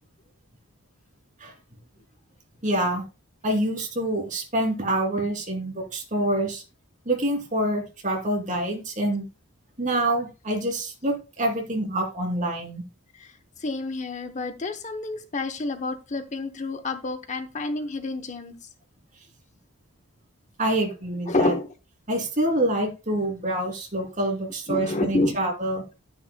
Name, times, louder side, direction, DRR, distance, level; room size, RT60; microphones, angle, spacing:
voice 1, 2.6-3.0 3.4-6.6 7.1-9.2 9.8-12.8 20.6-21.5 22.1-25.8, right 1 dB, 35° right, 3 dB, 3.0 m, -26 dB
voice 2, 13.6-18.6 21.3-21.7 24.7-25.4, left 2 dB, 30° left, 8 dB, 0.8 m, -28 dB
11.5 x 9.8 x 2.2 m, 0.29 s
head